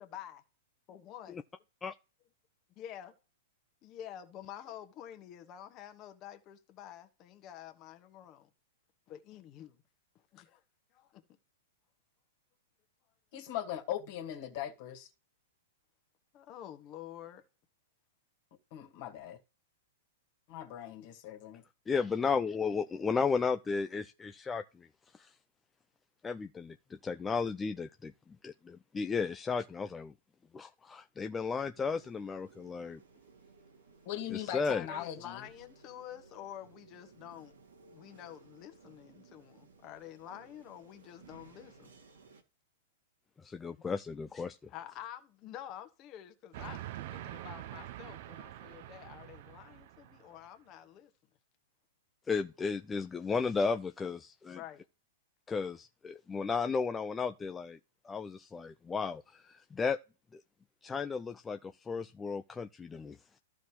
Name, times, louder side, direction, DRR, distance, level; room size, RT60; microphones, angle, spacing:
voice 1, 0.0-0.4 0.9-1.3 2.8-3.1 3.8-8.5 9.1-9.8 10.3-10.6 10.9-11.2 16.3-17.4 34.7-37.5 37.9-41.9 43.7-43.8 44.7-51.1 54.5-54.8, left 11 dB, 35° left, 1.4 m, -48 dB
voice 2, 13.3-15.1 18.7-19.4 20.5-21.6 34.1-35.4, left 11 dB, 55° left, 2.1 m, -40 dB
voice 3, 21.9-24.9 25.1-25.3 26.2-28.1 28.4-30.1 30.5-33.0 34.3-34.8 43.4-44.6 52.3-54.6 55.5-57.8 58.0-60.0 60.3-60.4 60.8-63.4, left 5 dB, 15° left, 0.5 m, -34 dB
sound 1, 31.7-42.4, right 4 dB, 85° right, 2.1 m, -59 dB
Train, 46.5-50.5, right 13 dB, 55° right, 0.7 m, -45 dB
14.0 x 5.0 x 3.1 m
hypercardioid pair, 110°, 0 cm